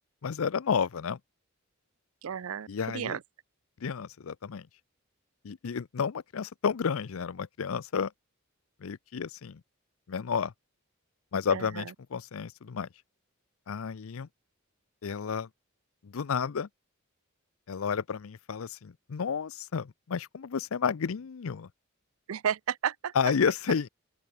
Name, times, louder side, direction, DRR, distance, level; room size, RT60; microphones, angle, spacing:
voice 1, 0.2-1.2 2.7-3.2 3.8-4.7 5.4-8.1 8.8-9.6 10.1-10.5 11.3-12.9 13.7-14.3 15.0-15.5 16.0-16.7 17.7-21.7 23.1-23.9, left 6 dB, 70° left, 0.5 m, -31 dB
voice 2, 2.2-3.2 11.5-11.9 22.3-23.1, right 8 dB, 75° right, 0.5 m, -33 dB
open air
head